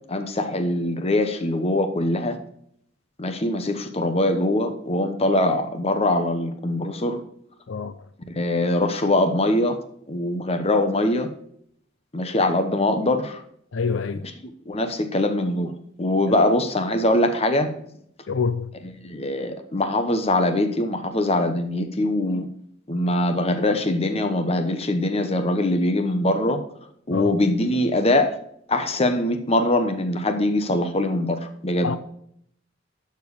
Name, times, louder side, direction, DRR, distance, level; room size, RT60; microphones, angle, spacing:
voice 1, 0.1-2.4 3.2-7.2 8.3-9.8 10.1-11.3 12.1-13.4 14.7-15.7 16.0-17.7 19.0-22.5 22.9-26.6 27.1-28.4 28.7-31.9, left 1 dB, 30° left, 0.9 m, -22 dB
voice 2, 13.7-14.2 16.3-16.4 18.3-18.7 27.1-27.3 31.8-32.0, left 5 dB, 75° left, 0.5 m, -26 dB
12.0 x 4.6 x 4.8 m
head